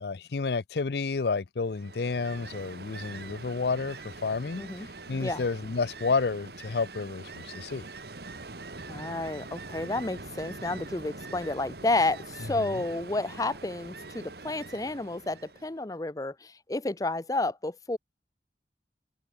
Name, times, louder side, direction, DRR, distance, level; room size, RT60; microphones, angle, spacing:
voice 1, 0.0-7.8, left 4 dB, 65° left, 0.6 m, -30 dB
Ocean, 1.7-15.8, right 3 dB, 65° right, 1.7 m, -43 dB
voice 2, 8.9-18.0, left 2 dB, 20° left, 0.6 m, -31 dB
head